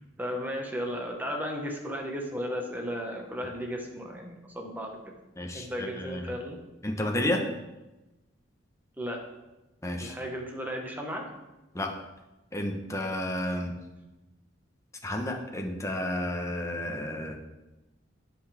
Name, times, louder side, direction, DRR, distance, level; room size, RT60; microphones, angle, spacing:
voice 1, 0.2-5.0 5.5-6.6 9.0-9.2 10.0-11.3, equal, 10° right, 1 dB, 1.4 m, -35 dB
voice 2, 5.4-6.3 6.8-7.4 9.8-10.1 11.7-11.9 12.5-13.8 15.0-17.4, left 1 dB, 15° left, 2 dB, 1.1 m, -31 dB
17.5 x 5.8 x 3.5 m, 1.0 s
head